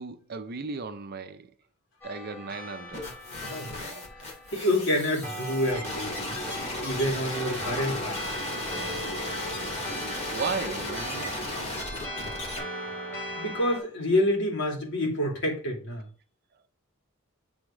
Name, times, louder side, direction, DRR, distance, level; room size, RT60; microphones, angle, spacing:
voice 1, 0.0-1.5 2.0-3.1 3.8-4.0 10.3-11.4, right 4 dB, 45° right, 0.5 m, -35 dB
sound 1, 2.0-13.8, equal, 10° left, 3.2 m, -39 dB
sound 2, 2.9-12.6, left 2 dB, 30° left, 1.9 m, -35 dB
voice 2, 3.4-3.8 4.5-6.4 6.8-8.2 9.5-9.7 13.3-16.1, left 1 dB, 60° left, 2.4 m, -28 dB
8.1 x 3.5 x 4.9 m
head